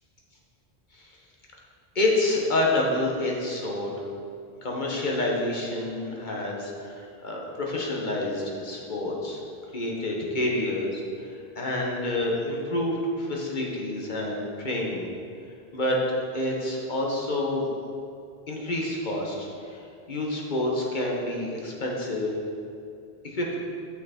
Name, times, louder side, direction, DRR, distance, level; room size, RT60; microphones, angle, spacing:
voice 1, 1.9-4.0 4.6-9.4 9.7-15.1 15.7-16.0 16.3-17.7 18.5-22.4 23.2-23.6, left 1 dB, 50° left, -2 dB, 1.3 m, -28 dB
8.3 x 6.0 x 4.3 m, 2.5 s
omnidirectional pair, 1.0 m